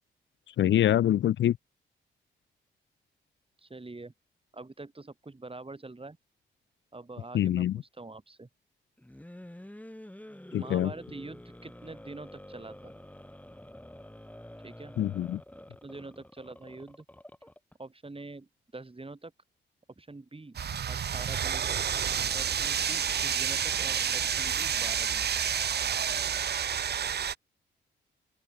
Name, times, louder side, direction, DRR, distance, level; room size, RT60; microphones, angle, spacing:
voice 1, 0.6-1.6 7.3-7.8 10.5-10.9 15.0-15.4, left 11 dB, 70° left, 0.5 m, -25 dB
voice 2, 3.6-4.1 4.5-6.2 6.9-8.5 10.5-12.9 14.6-14.9 15.7-17.0 17.8-19.3 20.0-20.6 20.9-21.8 22.3-25.3, right 3 dB, 30° right, 4.9 m, -45 dB
sound 1, 9.0-17.7, left 1 dB, 5° left, 3.8 m, -48 dB
sound 2, 20.5-27.3, right 8 dB, 55° right, 0.8 m, -29 dB
open air
supercardioid pair, 50°, 20 cm